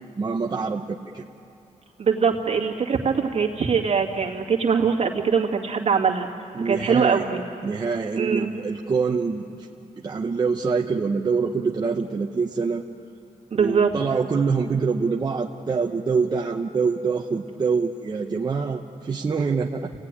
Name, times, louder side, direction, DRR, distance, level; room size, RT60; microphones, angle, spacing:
voice 1, 0.2-1.3 6.5-7.3 7.6-9.7 10.0-12.8 13.5-19.9, right 5 dB, 30° right, 0 dB, 0.9 m, -25 dB
voice 2, 2.0-6.3 6.6-7.4 8.1-8.5 13.5-13.9, right 6 dB, 50° right, 0 dB, 2.3 m, -22 dB
29.5 x 17.5 x 9.9 m, 2.9 s
wide cardioid pair, 155°, 13 cm